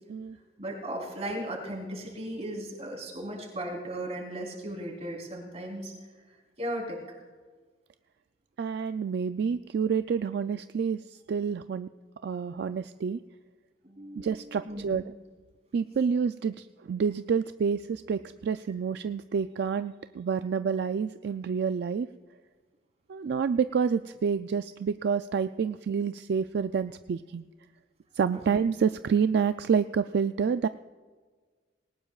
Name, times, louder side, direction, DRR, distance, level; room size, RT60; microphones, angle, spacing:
voice 1, 0.6-5.9 6.3-7.0 13.8-15.0 28.3-28.4, right 1 dB, 40° right, 0 dB, 3.6 m, -36 dB
voice 2, 8.6-11.9 12.2-13.2 14.2-15.0 15.7-22.1 23.1-27.5 28.1-30.7, right 6 dB, 65° right, 11 dB, 0.3 m, -28 dB
20.0 x 18.5 x 2.4 m, 1.5 s
head